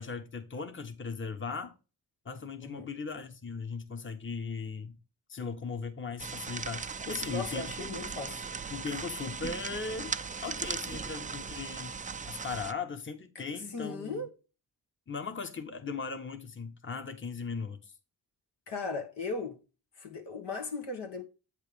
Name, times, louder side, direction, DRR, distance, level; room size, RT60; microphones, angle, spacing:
voice 1, 0.0-1.7 2.2-5.0 5.3-8.2 8.7-10.2 10.4-12.0 12.2-14.3 15.1-17.9, left 5 dB, 30° left, 1.0 m, -38 dB
sound 1, 6.2-12.7, right 5 dB, 20° right, 0.4 m, -38 dB
voice 2, 7.3-8.4 13.3-13.4 13.7-14.3 18.7-19.6 20.0-21.2, left 3 dB, 80° left, 1.5 m, -37 dB
8.0 x 3.3 x 5.0 m
cardioid pair, 55°, 41 cm